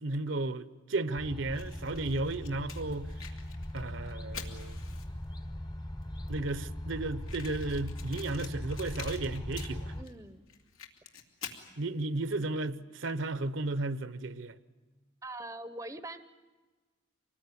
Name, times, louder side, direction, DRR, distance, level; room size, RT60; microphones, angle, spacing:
voice 1, 0.0-3.1 3.7-4.8 6.3-9.9 11.8-14.6, right 2 dB, 65° right, 0.8 m, -34 dB
sound 1, 1.2-10.0, left 1 dB, 20° left, 0.8 m, -40 dB
Fire, 1.5-5.3 6.0-6.1 6.3-6.4 6.6-6.7 7.2-10.1 10.5-11.7, left 8 dB, 80° left, 2.6 m, -47 dB
voice 2, 9.9-10.5 11.7-11.8 15.2-16.2, right 2 dB, 15° right, 0.7 m, -43 dB
25.5 x 20.0 x 9.8 m
head